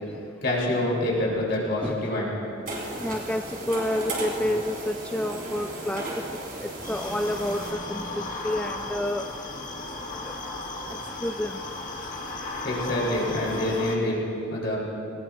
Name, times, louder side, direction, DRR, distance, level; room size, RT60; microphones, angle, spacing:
voice 1, 0.4-2.3 12.6-14.2 14.5-14.8, left 1 dB, 60° left, -4 dB, 3.6 m, -26 dB
voice 2, 1.8-2.1 3.0-6.0 6.6-9.3 10.2-10.3 11.2-11.6, left 1 dB, 5° left, 5 dB, 0.3 m, -29 dB
sound 1, 2.7-7.7, right 2 dB, 50° right, 3.6 m, -35 dB
sound 2, 6.8-14.0, left 2 dB, 45° left, 1.6 m, -35 dB
19.5 x 19.5 x 2.5 m, 2.9 s
head